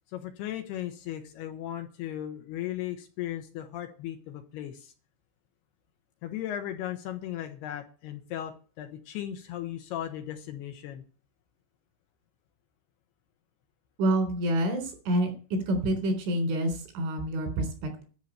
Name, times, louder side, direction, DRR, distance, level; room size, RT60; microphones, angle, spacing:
voice 1, 0.1-4.9 6.2-11.0, left 12 dB, 70° left, 6 dB, 2.7 m, -36 dB
voice 2, 14.0-15.3 15.7-18.0, right 1 dB, 85° right, 4 dB, 6.2 m, -27 dB
12.5 x 5.7 x 9.1 m, 0.39 s
omnidirectional pair, 5.4 m